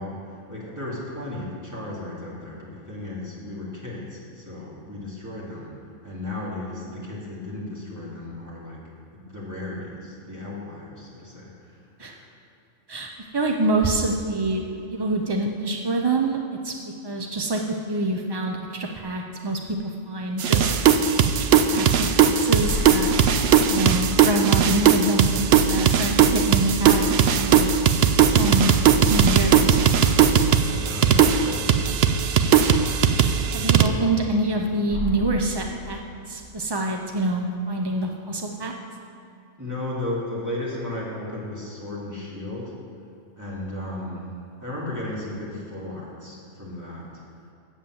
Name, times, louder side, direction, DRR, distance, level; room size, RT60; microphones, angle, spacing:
voice 1, 0.0-5.7 6.0-8.8 9.1-12.3 30.6-31.9 39.6-42.7 43.3-44.3 44.6-47.2, left 1 dB, 15° right, -7 dB, 2.4 m, -35 dB
voice 2, 12.9-14.6 14.9-16.4 16.6-16.7 17.0-20.7 21.7-23.1 23.7-27.1 27.3-27.7 28.3-28.7 29.1-29.8 33.5-36.0 36.3-38.7, right 2 dB, 45° right, 2 dB, 0.3 m, -26 dB
sound 1, 20.4-33.9, right 7 dB, 65° right, 0.7 m, -18 dB
sound 2, 22.6-24.6 25.0-25.1 29.1-31.1 34.9-36.9, left 4 dB, 90° left, 1.0 m, -34 dB
7.8 x 7.3 x 7.6 m, 2.6 s
omnidirectional pair, 1.3 m